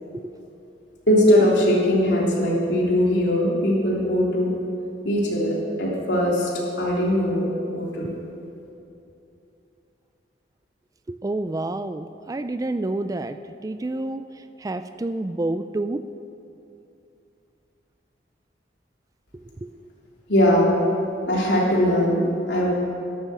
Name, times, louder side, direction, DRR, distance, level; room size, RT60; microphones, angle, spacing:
voice 1, 1.1-4.5 5.0-6.5 6.8-7.5 7.7-8.2 20.3-20.7 21.3-22.2 22.5-22.7, equal, 70° left, -3 dB, 3.3 m, -20 dB
voice 2, 11.1-13.4 13.6-14.2 14.6-16.0 19.6-19.7, right 2 dB, 20° right, 10 dB, 0.3 m, -28 dB
13.0 x 11.5 x 6.9 m, 2.8 s
head